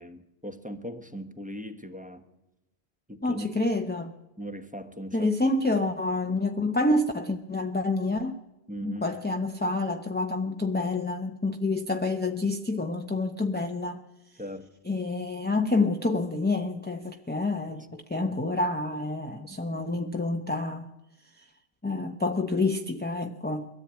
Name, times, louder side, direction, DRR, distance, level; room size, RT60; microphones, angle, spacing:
voice 1, 0.0-2.2 3.1-3.5 4.4-5.3 8.7-9.1 14.4-14.7 17.7-18.3 19.7-19.8, equal, 5° right, 6 dB, 1.1 m, -39 dB
voice 2, 3.2-4.1 5.1-8.4 8.8-14.0 14.8-20.9 21.8-23.7, left 2 dB, 10° left, 5 dB, 0.7 m, -28 dB
22.5 x 13.5 x 8.9 m, 0.98 s
omnidirectional pair, 1.1 m